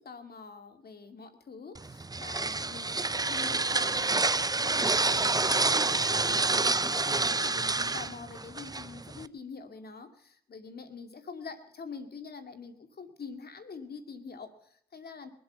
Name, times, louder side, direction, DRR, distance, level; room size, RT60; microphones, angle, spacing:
voice 1, 0.0-4.2 4.6-15.3, left 5 dB, 75° left, 7 dB, 2.5 m, -45 dB
sound 1, 1.7-9.3, right 3 dB, 25° right, 0.6 m, -28 dB
22.5 x 7.8 x 7.0 m, 0.66 s
cardioid pair, 50°, 16 cm